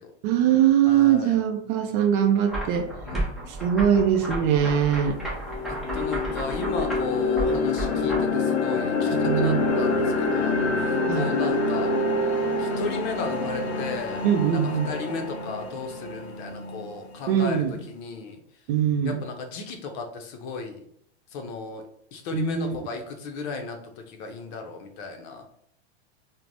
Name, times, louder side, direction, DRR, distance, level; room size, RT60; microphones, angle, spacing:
voice 1, 0.2-2.9 3.5-5.2 9.1-9.6 11.1-11.3 14.2-14.9 17.3-17.8 18.7-19.2 22.3-22.8, right 9 dB, 50° right, 6 dB, 0.5 m, -22 dB
voice 2, 0.9-1.3 3.0-3.6 5.7-11.9 12.6-14.3 14.5-18.4 19.0-20.8 21.3-21.8 22.1-25.5, left 4 dB, 45° left, 5 dB, 0.6 m, -35 dB
sound 1, 2.5-8.2, right 1 dB, ahead, 0.5 m, -33 dB
sound 2, 4.5-4.6 5.1-17.1, left 3 dB, 90° left, 0.6 m, -26 dB
3.2 x 2.1 x 2.5 m, 0.67 s
supercardioid pair, 135°, 33 cm